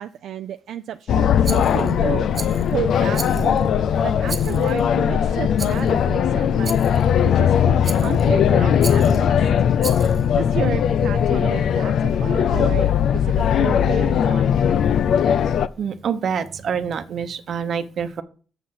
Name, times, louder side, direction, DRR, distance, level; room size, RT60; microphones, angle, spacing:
voice 1, 0.0-3.7 4.0-9.5 10.3-14.6, right 10 dB, 75° right, 9 dB, 0.4 m, -32 dB
sound 1, 1.1-15.7, left 8 dB, 70° left, 0.4 m, -19 dB
Rattle, 1.4-1.9 2.3-2.7 3.1-3.7 4.3-4.8 5.6-5.9 6.6-7.0 7.8-8.3 8.8-9.2 9.8-10.3, right 5 dB, 40° right, 1.1 m, -34 dB
voice 2, 15.8-18.2, right 7 dB, 60° right, 11 dB, 0.9 m, -26 dB
6.9 x 6.5 x 5.9 m, 0.40 s
cardioid pair, 90°, 0 cm